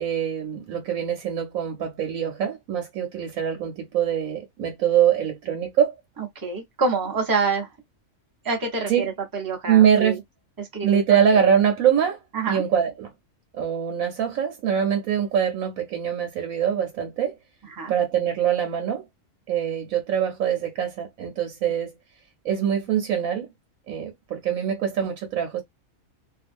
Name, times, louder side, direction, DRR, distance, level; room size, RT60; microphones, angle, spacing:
voice 1, 0.0-6.0 8.9-9.1 9.7-10.2 10.8-12.2 12.5-13.1 13.5-17.4 17.9-19.0 19.5-21.9 22.4-23.5 23.9-25.6, right 8 dB, 85° right, 1.2 m, -23 dB
voice 2, 6.2-7.7 8.4-10.2 10.6-11.5 12.3-12.6 17.7-17.9 21.6-21.7, right 4 dB, 20° right, 0.8 m, -27 dB
2.6 x 2.3 x 2.5 m
omnidirectional pair, 1.4 m